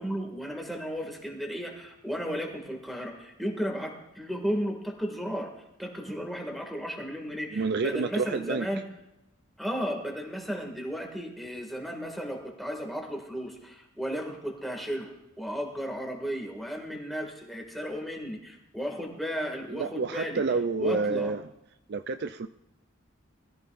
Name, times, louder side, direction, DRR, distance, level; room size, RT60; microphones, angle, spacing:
voice 1, 0.0-5.5 5.8-8.9 9.6-15.1 15.4-20.4 20.8-21.3, equal, ahead, 1 dB, 2.1 m, -34 dB
voice 2, 7.5-8.7 19.7-21.4 21.9-22.5, right 4 dB, 55° right, 9 dB, 0.5 m, -29 dB
21.5 x 14.0 x 2.6 m, 0.89 s
head